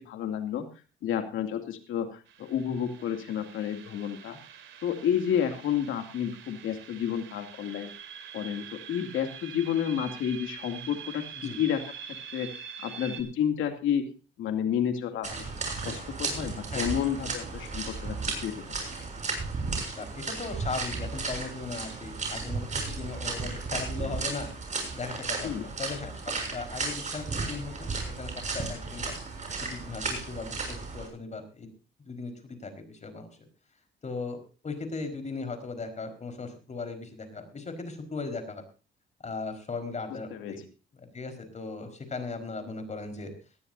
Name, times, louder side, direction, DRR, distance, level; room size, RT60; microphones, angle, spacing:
voice 1, 0.1-0.6 1.0-4.4 4.8-7.9 8.3-11.8 12.3-12.5 12.8-14.0 14.4-15.3 15.8-18.2 18.4-18.5 25.4-25.6 40.3-40.5, left 9 dB, 85° left, 5 dB, 2.5 m, -30 dB
sound 1, 2.3-13.2, right 8 dB, 75° right, 2.9 m, -45 dB
sound 2, 15.2-31.1, right 3 dB, 40° right, 6.8 m, -34 dB
voice 2, 20.0-24.5 24.9-29.2 29.6-31.7 32.0-33.5 34.0-34.4 34.6-38.6 39.2-40.6 41.0-43.3, left 4 dB, 35° left, 7 dB, 4.6 m, -38 dB
19.0 x 14.0 x 2.7 m, 0.34 s
cardioid pair, 90°, 20 cm